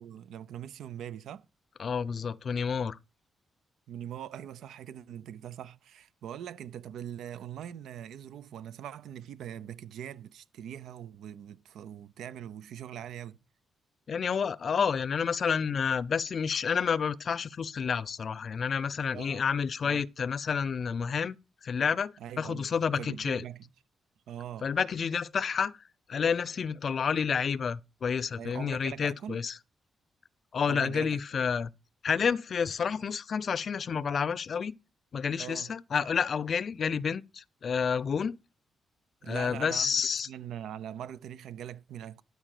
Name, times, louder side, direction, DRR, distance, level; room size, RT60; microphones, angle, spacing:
voice 1, 0.0-1.5 3.9-13.4 19.1-19.4 19.8-20.0 22.2-22.7 23.0-23.7 24.3-24.7 28.4-29.4 30.6-31.2 35.4-35.7 39.2-40.0 40.3-42.2, right 10 dB, 85° right, 0.7 m, -42 dB
voice 2, 1.8-3.0 14.1-21.4 21.6-23.4 24.6-25.8 26.1-29.5 30.5-31.7 32.0-34.8 35.1-38.4 39.3-40.3, left 6 dB, 55° left, 0.6 m, -29 dB
12.5 x 4.9 x 6.6 m
cardioid pair, 80°, 0 cm